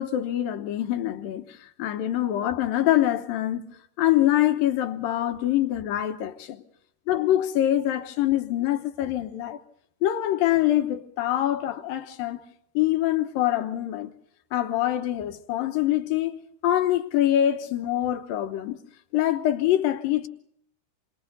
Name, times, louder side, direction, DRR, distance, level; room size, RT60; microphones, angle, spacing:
voice 1, 0.0-3.7 4.0-6.6 7.1-9.6 10.0-12.4 12.8-14.1 14.5-18.8 19.1-20.3, left 13 dB, 70° left, 2.3 m, -24 dB
28.5 x 24.0 x 4.0 m
omnidirectional pair, 4.9 m